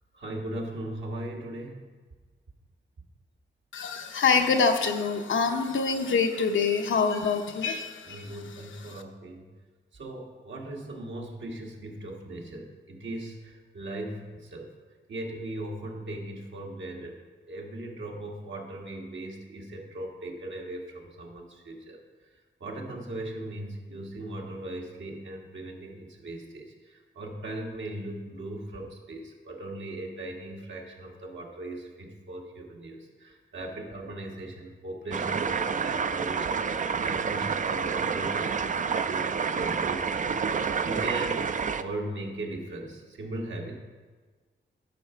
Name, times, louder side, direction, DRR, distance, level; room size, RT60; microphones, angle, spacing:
voice 1, 0.1-1.9 8.0-9.5 9.9-14.7 15.1-17.1 17.5-22.0 22.6-38.7 39.0-40.1 40.4-41.5 41.8-43.8, right 1 dB, 70° right, 0 dB, 1.7 m, -38 dB
voice 2, 3.7-8.2, left 5 dB, 80° left, 5 dB, 0.9 m, -25 dB
sound 1, 35.1-41.8, right 6 dB, 40° right, 0.4 m, -28 dB
10.5 x 5.9 x 4.5 m, 1.4 s
cardioid pair, 65°, 20 cm